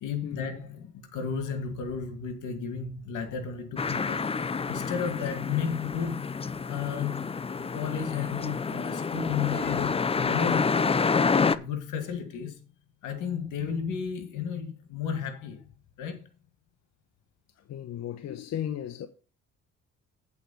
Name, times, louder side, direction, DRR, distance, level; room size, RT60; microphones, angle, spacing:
voice 1, 0.0-4.3 4.7-7.3 7.7-11.0 11.5-12.6 13.0-15.6 16.0-16.2, left 7 dB, 85° left, 2.0 m, -33 dB
sound 1, 3.8-11.6, left 5 dB, 20° left, 0.5 m, -28 dB
voice 2, 17.6-19.1, left 10 dB, 60° left, 0.8 m, -35 dB
8.4 x 4.6 x 6.9 m
cardioid pair, 90°, 30 cm